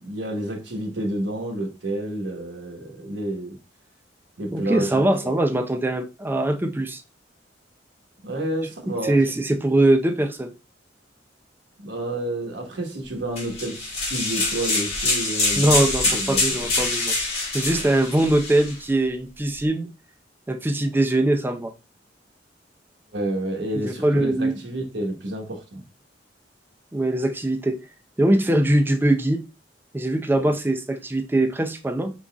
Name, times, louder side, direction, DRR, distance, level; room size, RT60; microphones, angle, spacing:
voice 1, 0.0-3.6 4.4-5.4 8.2-9.2 11.8-15.8 16.1-16.4 17.7-17.9 23.1-25.8 30.3-30.5, right 1 dB, 75° right, 1.2 m, -30 dB
voice 2, 4.5-7.0 9.0-10.5 15.5-17.1 17.5-19.9 20.5-21.7 23.8-24.6 26.9-27.8 28.2-29.4 29.9-32.1, right 1 dB, 10° right, 0.4 m, -22 dB
sound 1, 13.4-18.7, left 2 dB, 35° left, 1.7 m, -25 dB
4.9 x 3.8 x 2.3 m
head